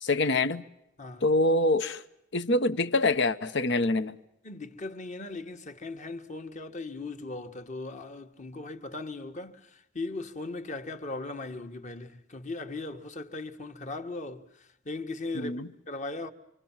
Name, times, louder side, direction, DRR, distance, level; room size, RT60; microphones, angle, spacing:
voice 1, 0.0-0.6 1.2-2.0 2.3-4.2 15.3-15.7, left 2 dB, 60° left, 1.1 m, -25 dB
voice 2, 4.4-16.3, left 2 dB, 35° left, 1.6 m, -38 dB
27.0 x 25.0 x 7.4 m
head